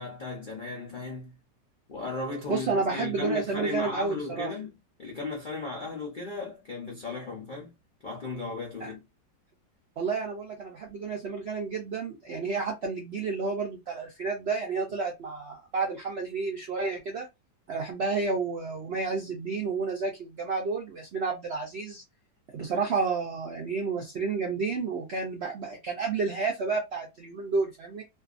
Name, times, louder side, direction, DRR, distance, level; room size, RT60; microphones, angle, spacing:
voice 1, 0.0-1.3 1.9-4.7 5.0-7.7 8.0-9.0, left 3 dB, 75° left, 0.4 m, -35 dB
voice 2, 2.5-4.5 8.8-8.9 10.0-17.3 17.7-22.0 22.5-28.0, right 4 dB, 70° right, 0.6 m, -30 dB
2.6 x 2.3 x 2.4 m
omnidirectional pair, 1.8 m